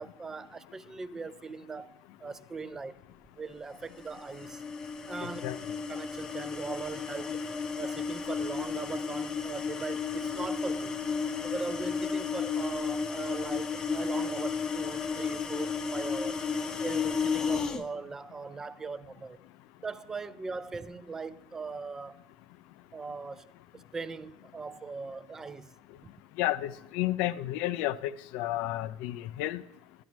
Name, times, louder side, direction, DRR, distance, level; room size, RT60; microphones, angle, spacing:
voice 1, 0.0-3.0 3.3-4.6 5.1-5.5 5.9-7.4 7.8-11.0 11.4-16.5 16.8-19.4 19.8-22.2 22.9-25.7 26.0-26.1, right 4 dB, 20° right, 0.4 m, -40 dB
sound 1, 3.9-17.8, left 5 dB, 30° left, 0.7 m, -33 dB
voice 2, 5.2-5.6 26.4-29.6, left 14 dB, 60° left, 0.4 m, -32 dB
12.0 x 10.5 x 3.0 m
hypercardioid pair, 90°, 3 cm